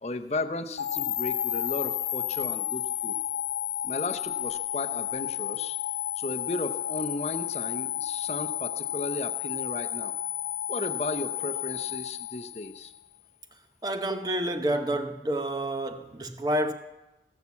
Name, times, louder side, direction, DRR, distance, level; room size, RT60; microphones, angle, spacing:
voice 1, 0.0-3.2 3.8-5.8 6.2-10.1 10.7-12.9, left 2 dB, 35° left, 0.7 m, -35 dB
sound 1, 0.8-13.0, left 12 dB, 85° left, 0.3 m, -32 dB
voice 2, 13.8-16.7, right 1 dB, 20° right, 0.8 m, -29 dB
18.0 x 7.3 x 7.1 m
head